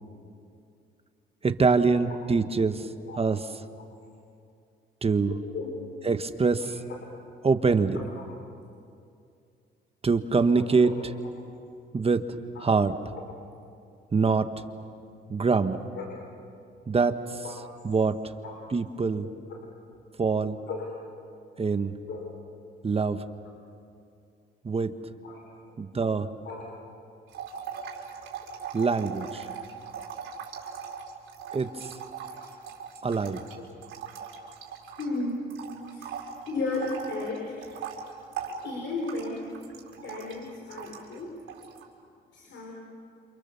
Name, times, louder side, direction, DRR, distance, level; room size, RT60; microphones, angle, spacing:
voice 1, 1.4-2.8 3.2-3.4 5.0-5.3 6.0-6.8 7.4-8.0 10.0-10.9 11.9-12.2 12.6-12.9 14.1-14.5 15.3-15.8 16.9-17.4 17.8-18.2 18.7-19.2 20.2-20.6 21.6-21.9 22.8-23.2 24.6-24.9 25.8-26.3 28.7-29.5 31.5-31.7 33.0-33.4, right 4 dB, 30° right, 9 dB, 1.4 m, -24 dB
voice 2, 2.8-3.2 5.5-5.7 6.6-6.7 7.9-8.0 10.6-10.9 12.6-12.7 15.9-16.2 17.4-17.5 18.4-18.6 19.2-19.6 20.7-20.9 22.1-22.3 25.2-25.4 25.7-25.8 26.4-26.7 32.3-32.5 35.0-35.4 35.9-36.1 36.5-37.7 38.6-39.5 39.9-41.4 42.3-42.7, left 3 dB, 65° left, -1 dB, 5.2 m, -35 dB
sound 1, 27.3-35.2 35.5-41.2 41.5-41.8, right 7 dB, 85° right, 4.5 m, -40 dB
28.5 x 27.5 x 7.0 m, 2.4 s
cardioid pair, 90°, 20 cm